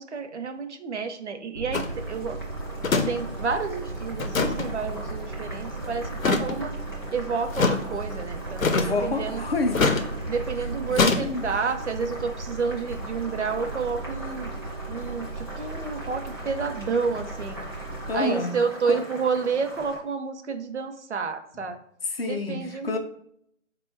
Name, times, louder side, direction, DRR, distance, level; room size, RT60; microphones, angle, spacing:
voice 1, 0.0-2.4 3.1-6.7 7.1-8.7 9.0-9.4 10.3-14.5 14.9-17.6 18.1-21.8 22.2-23.0, right 5 dB, 60° right, 0.6 m, -30 dB
sound 1, 1.5-18.2, right 3 dB, 85° right, 0.9 m, -36 dB
sound 2, 1.7-1.9 2.8-3.1 3.3-3.4 4.2-4.7 6.2-6.6 7.5-7.8 8.6-9.0 9.7-10.1 10.9-11.2, left 4 dB, 90° left, 0.6 m, -23 dB
Boiling, 1.8-20.0, left 1 dB, 20° right, 0.5 m, -42 dB
voice 2, 8.7-9.9 10.6-11.5 18.1-18.6 18.8-19.1 21.5-21.7 22.0-23.0, left 3 dB, 50° left, 0.5 m, -29 dB
3.7 x 2.2 x 3.2 m
figure-of-eight pair, 150°, 39 cm